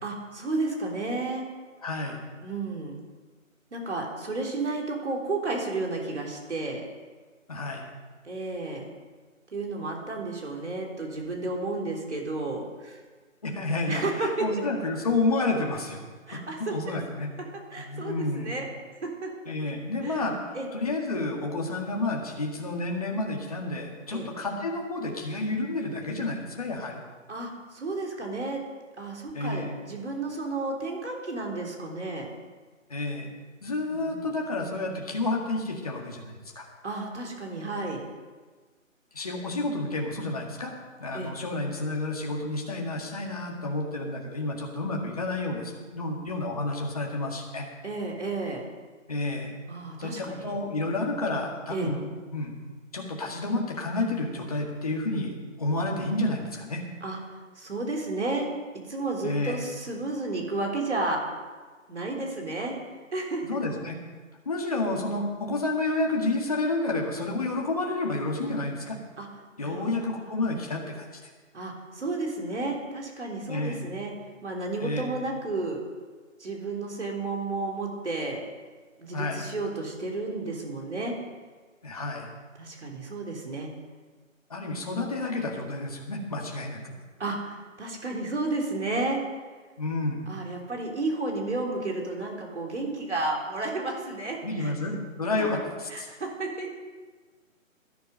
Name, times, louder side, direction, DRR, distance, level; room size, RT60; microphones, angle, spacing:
voice 1, 0.0-1.4 2.4-2.9 3.7-6.9 8.2-8.9 9.5-13.0 13.9-14.5 16.3-16.8 17.7-18.7 19.0-19.3 20.0-20.2 20.5-20.7 24.1-24.3 27.3-28.6 29.0-32.3 33.9-34.3 36.8-38.1 41.1-41.3 47.8-48.6 49.7-50.6 51.7-51.9 57.0-57.2 57.6-58.5 58.9-61.2 61.9-62.8 63.1-63.4 69.2-69.3 69.6-69.9 70.5-70.7 71.5-74.1 74.4-75.8 76.4-78.4 79.0-81.2 82.6-83.7 87.2-89.2 90.3-94.7 95.4-95.5 95.9-96.7, right 2 dB, 60° right, 0 dB, 3.7 m, -32 dB
voice 2, 1.8-2.2 7.5-7.9 13.4-16.0 16.3-17.3 17.9-18.5 19.5-27.0 29.3-29.7 32.9-33.3 33.6-36.7 39.1-40.7 41.0-47.7 49.1-49.5 50.0-52.6 52.9-55.3 55.6-56.8 59.2-59.6 63.4-64.0 64.5-69.0 69.6-71.3 73.5-73.9 74.8-75.1 79.1-79.5 81.8-82.3 84.5-86.9 89.8-90.3 94.4-96.1, left 2 dB, 30° left, 0 dB, 1.8 m, -30 dB
17.5 x 10.5 x 5.2 m, 1.4 s
hypercardioid pair, 175°, 40 cm